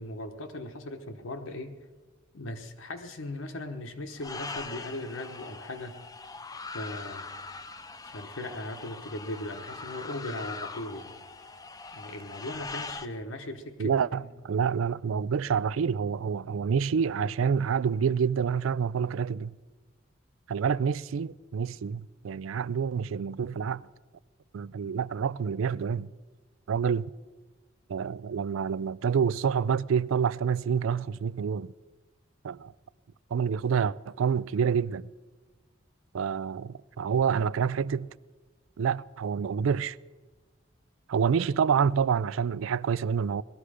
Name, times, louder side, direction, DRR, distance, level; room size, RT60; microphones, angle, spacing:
voice 1, 0.0-1.8 2.3-6.0 6.7-7.3 8.0-11.1 11.9-14.3, left 1 dB, 90° left, 1.1 m, -38 dB
sound 1, 4.2-13.1, left 4 dB, 20° left, 0.5 m, -42 dB
voice 2, 13.8-19.6 20.5-23.8 24.5-26.1 26.7-27.1 27.9-31.7 32.4-32.7 33.3-35.1 36.1-38.1 38.8-40.0 41.1-43.4, right 6 dB, 85° right, 0.4 m, -27 dB
18.5 x 13.0 x 4.9 m
head